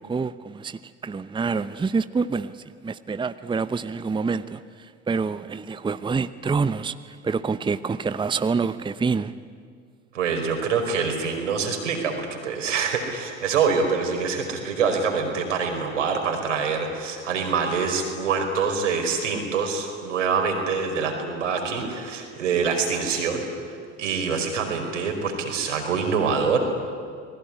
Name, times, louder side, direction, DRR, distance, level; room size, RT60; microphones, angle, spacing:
voice 1, 0.0-9.3, right 4 dB, 15° right, 0.8 m, -27 dB
voice 2, 10.1-23.5 24.0-26.6, right 5 dB, 75° right, 5.0 m, -25 dB
29.0 x 20.5 x 10.0 m
figure-of-eight pair, 65°, 37 cm